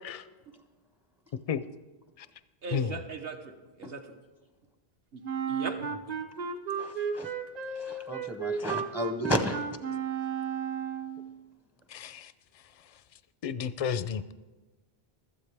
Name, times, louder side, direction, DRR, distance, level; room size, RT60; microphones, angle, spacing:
voice 1, 2.6-4.2 5.1-5.2 5.5-5.9, right 4 dB, 70° right, 4 dB, 1.3 m, -38 dB
Wind instrument woodwind instrument, 5.2-11.3, right 6 dB, 45° right, 0.7 m, -34 dB
voice 2, 6.8-7.3 7.8-9.6, equal, 5° right, 7 dB, 0.4 m, -32 dB
voice 3, 11.9-12.3 13.4-14.3, left 7 dB, 50° left, 14 dB, 0.4 m, -32 dB
16.0 x 12.5 x 3.4 m, 1.2 s
omnidirectional pair, 1.1 m